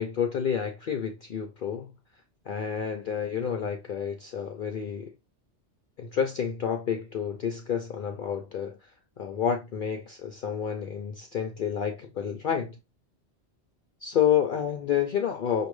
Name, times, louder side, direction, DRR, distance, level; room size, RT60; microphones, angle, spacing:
voice 1, 0.0-1.9 2.5-5.1 6.0-8.8 9.2-12.8 14.0-15.7, left 8 dB, 55° left, 0.7 m, -29 dB
6.2 x 2.6 x 3.1 m
omnidirectional pair, 1.2 m